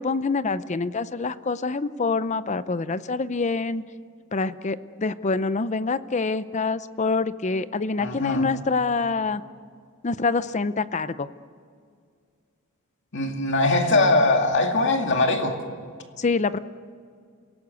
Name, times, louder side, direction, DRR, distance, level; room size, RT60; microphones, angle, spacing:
voice 1, 0.0-3.8 4.3-9.4 10.0-11.3 16.2-16.6, left 4 dB, 30° left, 14 dB, 0.6 m, -26 dB
voice 2, 8.0-8.4 13.1-15.6, left 2 dB, 55° left, 4 dB, 2.3 m, -21 dB
28.0 x 17.5 x 8.2 m, 2.2 s
head